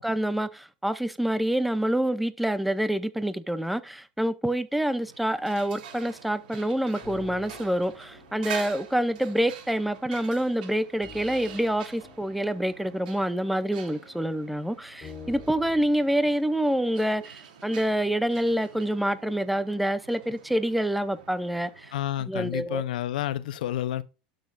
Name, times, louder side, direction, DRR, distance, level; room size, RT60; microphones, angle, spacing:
voice 1, 0.0-21.9 22.3-22.8, right 1 dB, ahead, 0.7 m, -27 dB
sound 1, 4.8-22.2, right 7 dB, 85° right, 3.0 m, -46 dB
sound 2, 7.0-16.0, left 2 dB, 20° left, 3.5 m, -49 dB
voice 2, 21.9-24.0, left 12 dB, 85° left, 0.9 m, -30 dB
12.0 x 6.4 x 2.6 m
supercardioid pair, 135°, 4 cm